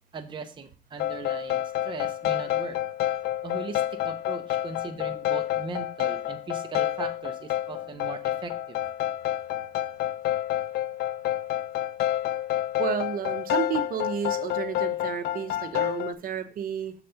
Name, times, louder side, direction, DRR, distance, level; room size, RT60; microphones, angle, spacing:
voice 1, 0.1-2.8 3.4-8.8, right 4 dB, 30° right, 5 dB, 0.7 m, -39 dB
sound 1, 1.0-16.1, left 12 dB, 70° left, 0.4 m, -29 dB
voice 2, 12.8-16.9, right 8 dB, 55° right, 9 dB, 0.9 m, -31 dB
6.6 x 4.1 x 5.6 m, 0.39 s
cardioid pair, 110°, 17 cm